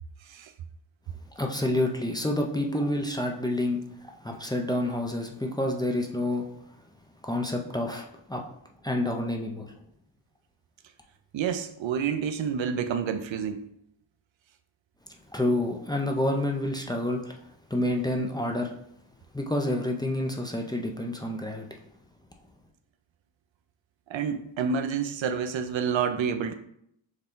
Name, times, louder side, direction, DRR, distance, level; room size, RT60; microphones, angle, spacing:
voice 1, 1.3-6.5 7.2-8.5 8.8-9.7 15.3-17.4 17.7-18.7 19.3-21.8, left 1 dB, 10° left, 0.4 m, -28 dB
voice 2, 11.3-13.7 24.1-26.5, right 7 dB, 80° right, 0.6 m, -29 dB
6.4 x 2.3 x 3.7 m
wide cardioid pair, 105°, 45 cm